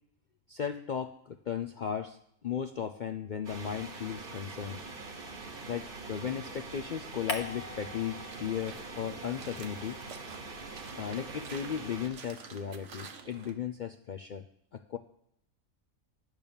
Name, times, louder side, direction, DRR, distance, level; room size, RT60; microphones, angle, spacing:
voice 1, 0.5-4.8 5.7-10.0 10.9-14.4 14.7-15.0, left 8 dB, 70° left, 9 dB, 0.4 m, -36 dB
sound 1, 3.4-12.1, right 3 dB, 45° right, 1.2 m, -44 dB
sound 2, 7.3-9.0 9.3-11.7, left 4 dB, 40° left, 1.1 m, -44 dB
sound 3, 8.3-13.5, right 5 dB, 60° right, 1.2 m, -49 dB
10.5 x 6.3 x 7.0 m, 0.72 s
omnidirectional pair, 1.4 m